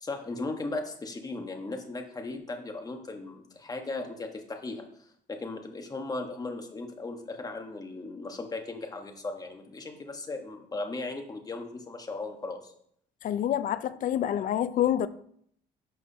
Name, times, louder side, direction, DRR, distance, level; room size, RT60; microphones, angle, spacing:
voice 1, 0.0-12.7, left 3 dB, 20° left, 1.2 m, -37 dB
voice 2, 13.2-15.1, left 11 dB, 55° left, 0.5 m, -27 dB
11.0 x 5.9 x 2.8 m
cardioid pair, 110°, 17 cm